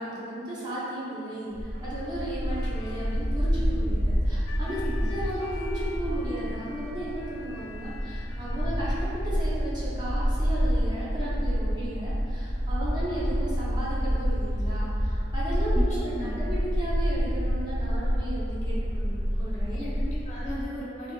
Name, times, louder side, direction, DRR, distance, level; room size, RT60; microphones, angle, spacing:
voice 1, 0.0-8.9 9.2-19.8, right 1 dB, 20° right, -9 dB, 0.6 m, -35 dB
Bark, 1.5-20.6, equal, 85° right, 0.8 m, -28 dB
sound 1, 2.5-8.7, left 4 dB, 85° left, 0.3 m, -46 dB
voice 2, 4.6-5.1 15.7-15.8 16.1-16.6 19.7-21.1, left 1 dB, 35° left, -7 dB, 0.6 m, -37 dB
3.3 x 2.7 x 2.4 m, 2.5 s
head